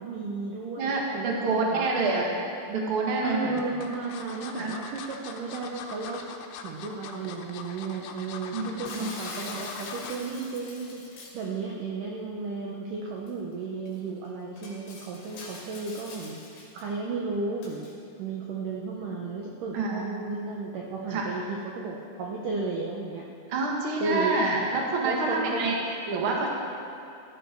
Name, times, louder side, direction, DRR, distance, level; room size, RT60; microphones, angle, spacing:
voice 1, 0.0-2.2 3.2-6.3 6.6-17.9 18.2-23.3 24.0-24.4 25.0-25.7, right 4 dB, 80° right, -2 dB, 1.9 m, -34 dB
voice 2, 0.8-2.3 2.7-3.5 4.4-4.7 8.5-9.1 19.7-20.1 21.1-21.3 23.5-25.7 26.1-26.5, right 3 dB, 55° right, -1 dB, 1.5 m, -27 dB
sound 1, 2.3-2.9 3.6-10.3 10.7-10.9 11.2-11.3, left 6 dB, 80° left, 3.3 m, -42 dB
Shatter, 8.9-11.5 13.3-13.4 13.9-14.0 14.6-16.8 17.6-17.9, left 3 dB, 65° left, 4.2 m, -44 dB
16.0 x 13.5 x 4.6 m, 2.7 s
omnidirectional pair, 5.3 m